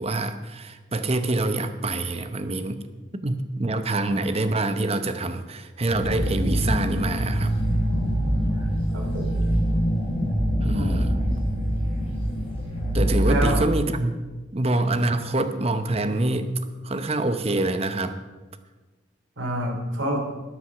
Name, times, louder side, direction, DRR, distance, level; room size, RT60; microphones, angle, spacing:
voice 1, 0.0-2.8 3.2-7.5 10.6-11.2 12.9-14.2 14.5-16.5 16.8-18.2, right 2 dB, 35° right, 10 dB, 0.8 m, -26 dB
sound 1, 5.9-13.6, equal, 30° left, 3.8 m, -24 dB
voice 2, 8.9-9.5 10.7-11.3 13.2-13.6 19.4-20.2, right 1 dB, 90° right, 1 dB, 2.9 m, -28 dB
13.0 x 9.3 x 5.9 m, 1.3 s
head